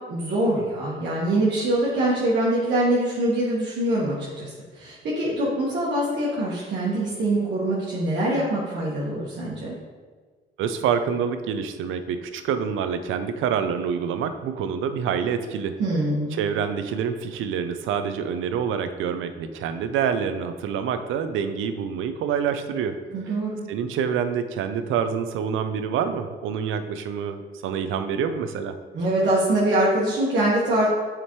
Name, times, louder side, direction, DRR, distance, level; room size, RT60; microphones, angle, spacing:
voice 1, 0.1-9.7 15.8-16.3 23.1-23.6 28.9-30.9, right 1 dB, 65° right, -6 dB, 1.4 m, -24 dB
voice 2, 10.6-15.8 16.3-23.0 23.7-28.7, right 7 dB, 85° right, 9 dB, 0.5 m, -27 dB
7.1 x 5.0 x 3.1 m, 1.5 s
cardioid pair, 90°, 20 cm